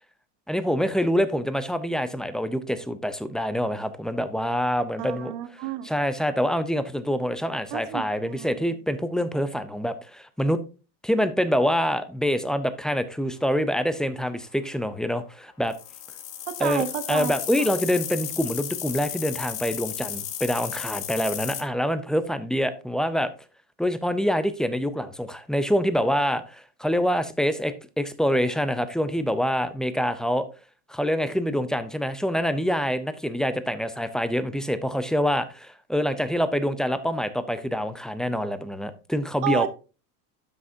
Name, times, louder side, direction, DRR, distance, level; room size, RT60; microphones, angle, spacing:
voice 1, 0.5-5.3 5.8-10.6 11.0-15.8 16.6-23.3 23.8-30.4 30.9-39.7, equal, ahead, 12 dB, 0.5 m, -26 dB
voice 2, 5.0-5.9 7.7-8.7 16.5-17.7 39.4-39.7, right 13 dB, 55° right, 10 dB, 1.5 m, -31 dB
sound 1, 15.6-21.6, left 10 dB, 70° left, 2.3 m, -34 dB
12.5 x 6.1 x 2.7 m, 0.33 s
supercardioid pair, 125°, 49 cm